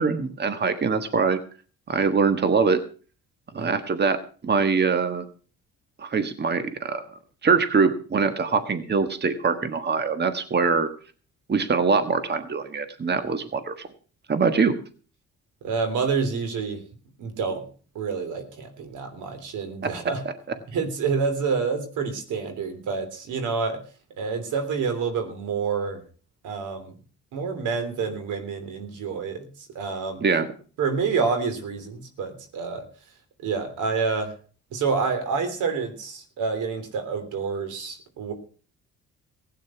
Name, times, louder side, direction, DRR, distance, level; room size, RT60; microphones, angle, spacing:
voice 1, 0.0-1.4 1.9-2.8 3.5-4.2 4.4-5.2 6.0-7.0 7.4-10.9 11.5-13.9 14.3-14.7 30.2-30.5, right 5 dB, 35° right, 9 dB, 1.5 m, -23 dB
voice 2, 15.6-16.8 17.2-17.6 17.9-20.2 20.7-23.8 24.2-26.0 26.4-26.9 27.3-30.2 30.8-32.8 33.4-34.3 34.7-38.3, right 5 dB, 85° right, 8 dB, 3.3 m, -28 dB
16.0 x 9.3 x 5.9 m, 0.40 s
cardioid pair, 90°, 30 cm